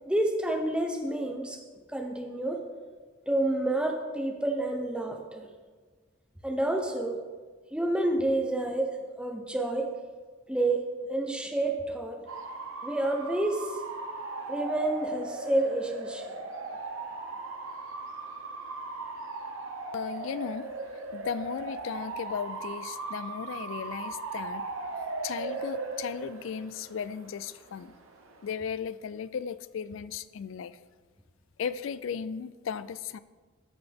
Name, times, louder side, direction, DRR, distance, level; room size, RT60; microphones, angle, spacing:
voice 1, 0.1-1.6 1.9-2.6 3.3-5.5 6.4-7.2 7.7-9.9 10.5-12.2 12.8-13.8 14.5-16.3, right 1 dB, 5° right, 2 dB, 0.7 m, -29 dB
Bark / Motor vehicle (road) / Siren, 12.3-28.5, right 3 dB, 80° right, 0.9 m, -38 dB
voice 2, 19.9-20.7 21.1-24.7 25.2-28.0 28.4-30.8 31.6-33.2, left 7 dB, 70° left, 15 dB, 0.3 m, -36 dB
12.5 x 5.7 x 3.5 m, 1.4 s
head